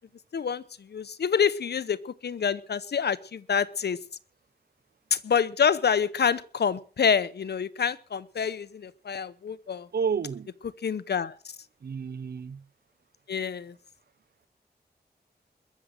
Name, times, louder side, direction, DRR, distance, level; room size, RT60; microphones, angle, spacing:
voice 1, 0.3-4.0 5.1-9.9 10.8-11.3 13.3-13.7, left 7 dB, 80° left, 0.9 m, -27 dB
voice 2, 9.9-10.5 11.8-12.6, right 6 dB, 70° right, 0.8 m, -30 dB
21.5 x 7.5 x 6.5 m
wide cardioid pair, 80°, 17 cm